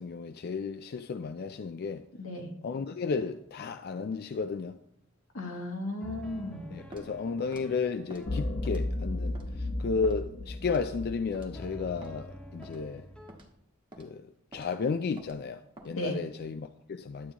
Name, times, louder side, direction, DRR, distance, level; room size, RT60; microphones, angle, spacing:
voice 1, 0.0-2.0 2.6-4.8 6.7-13.1 14.0-17.3, left 5 dB, 50° left, 0.4 m, -33 dB
voice 2, 2.2-2.5 5.3-6.7 15.9-16.2, left 1 dB, 90° left, 1.7 m, -35 dB
sound 1, 3.2-3.8 6.0-10.8 11.5-13.4, equal, 5° left, 0.8 m, -49 dB
Walk footsteps, 6.9-7.1 7.5-7.7 8.1-8.3 8.7-9.0 9.4-9.5 10.0-10.2 10.7-10.9 11.3-11.5 12.0-12.2 12.6-12.8 13.3-13.5 13.9-14.1 14.5-14.7 15.2-15.4 15.8-15.9, right 1 dB, 25° right, 1.3 m, -49 dB
sound 2, 8.3-12.6, left 2 dB, 70° left, 1.2 m, -35 dB
11.5 x 8.3 x 2.9 m
head